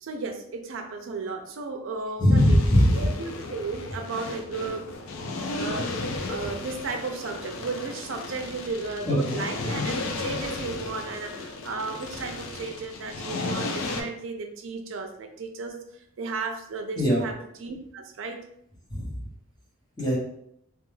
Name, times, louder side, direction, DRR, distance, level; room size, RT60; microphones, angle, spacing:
voice 1, 0.0-2.6 3.0-4.8 5.6-15.8 16.2-17.3 17.6-18.4, right 4 dB, 65° right, 5 dB, 0.4 m, -34 dB
voice 2, 2.2-3.1 9.0-9.2 17.0-17.2 18.9-19.2 20.0-20.2, left 1 dB, 20° left, -5 dB, 0.8 m, -20 dB
sound 1, 2.3-14.0, left 3 dB, 80° left, 0.4 m, -34 dB
2.3 x 2.3 x 3.1 m, 0.72 s
head